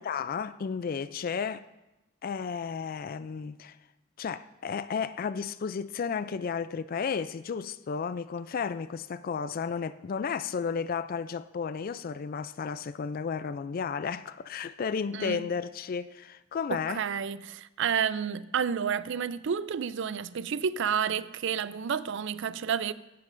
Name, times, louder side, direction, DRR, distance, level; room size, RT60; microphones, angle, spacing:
voice 1, 0.0-1.6 2.2-3.8 4.2-17.0, left 6 dB, 45° left, 0.3 m, -33 dB
voice 2, 16.7-22.9, right 7 dB, 60° right, 0.4 m, -30 dB
16.5 x 11.5 x 2.6 m
head